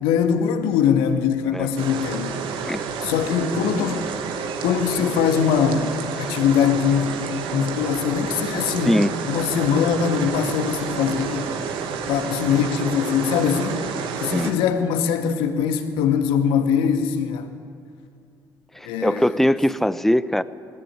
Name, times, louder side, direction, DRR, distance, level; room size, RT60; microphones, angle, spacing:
voice 1, 0.0-2.3 3.0-4.0 4.6-9.0 9.3-11.5 12.1-13.8 14.2-17.5 18.8-19.3, left 7 dB, 80° left, 7 dB, 1.8 m, -22 dB
sound 1, 1.8-14.5, right 6 dB, 75° right, 2.1 m, -29 dB
voice 2, 8.8-9.2 14.3-14.5 18.7-20.4, left 1 dB, 5° left, 15 dB, 0.9 m, -21 dB
20.0 x 17.0 x 8.9 m, 2.3 s
hypercardioid pair, 60°, 9 cm